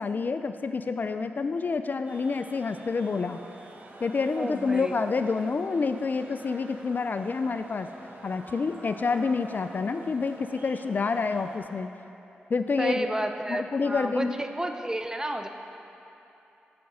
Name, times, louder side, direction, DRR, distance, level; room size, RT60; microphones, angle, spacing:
voice 1, 0.0-3.4 4.0-7.9 8.2-11.9 12.5-13.1 13.5-14.3, left 4 dB, 50° left, 9 dB, 0.3 m, -28 dB
sound 1, 2.1-11.6, right 2 dB, 50° right, 1.0 m, -47 dB
voice 2, 4.3-4.9 12.8-15.5, right 1 dB, 15° right, 6 dB, 0.6 m, -31 dB
7.1 x 5.2 x 6.1 m, 2.9 s
cardioid pair, 50°, 4 cm